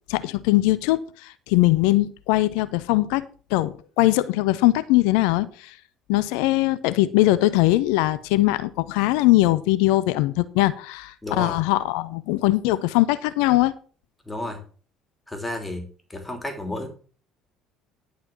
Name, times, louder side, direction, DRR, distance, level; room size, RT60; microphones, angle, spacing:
voice 1, 0.1-3.2 3.5-5.7 6.1-13.7, left 17 dB, 65° left, 0.5 m, -21 dB
voice 2, 11.2-11.6 14.3-14.6 15.3-15.8 16.1-16.9, left 1 dB, 10° left, 3.1 m, -31 dB
11.0 x 5.1 x 6.0 m
figure-of-eight pair, 55°, 0 cm